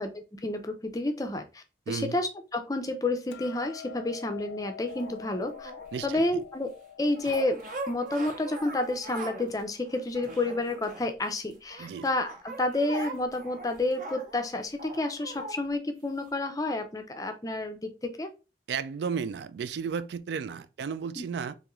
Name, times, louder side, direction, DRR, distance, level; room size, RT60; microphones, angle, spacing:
voice 1, 0.0-5.7 6.0-6.7 7.0-7.6 7.9-18.3 21.2-21.3, left 2 dB, 20° left, 0.4 m, -30 dB
voice 2, 1.9-2.2 5.9-6.4 11.8-12.1 18.7-21.5, right 6 dB, 75° right, 0.3 m, -34 dB
Hammer, 3.3-9.5, left 9 dB, 75° left, 0.5 m, -47 dB
sound 1, 4.9-6.2 7.1-9.5 9.9-11.3 11.7-15.6 16.3-16.4, right 2 dB, 50° right, 0.8 m, -41 dB
3.6 x 3.0 x 3.0 m
head